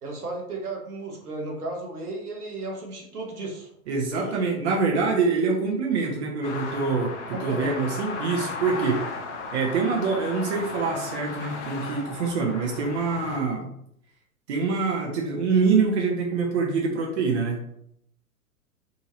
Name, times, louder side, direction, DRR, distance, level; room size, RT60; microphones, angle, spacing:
voice 1, 0.0-3.7 7.3-7.8, right 2 dB, 80° right, 0 dB, 1.0 m, -34 dB
voice 2, 3.9-7.1 7.4-9.0 9.5-13.7 14.5-17.7, right 4 dB, 50° right, 0 dB, 0.7 m, -25 dB
sound 1, 6.4-13.4, left 3 dB, 50° left, 0.7 m, -35 dB
2.8 x 2.7 x 2.8 m, 0.74 s
figure-of-eight pair, 105°, 44 cm